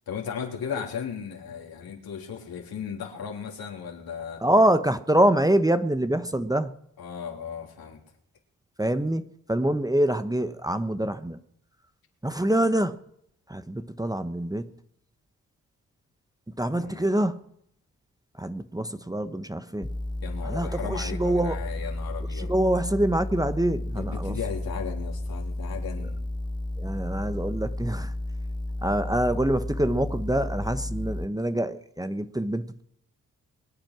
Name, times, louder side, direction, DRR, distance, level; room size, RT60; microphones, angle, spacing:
voice 1, 0.1-4.4 7.0-8.0 16.8-17.1 20.2-22.5 23.9-26.2, left 7 dB, 70° left, 0 dB, 3.5 m, -36 dB
voice 2, 4.4-6.7 8.8-11.4 12.2-13.0 13.5-14.7 16.6-17.4 18.4-19.9 20.4-21.6 22.3-24.4 26.8-28.1 28.8-32.8, right 1 dB, 10° right, 10 dB, 1.1 m, -25 dB
sound 1, 19.8-31.2, left 1 dB, 10° left, 1.0 m, -32 dB
23.0 x 9.1 x 6.1 m, 0.72 s
supercardioid pair, 40°, 37 cm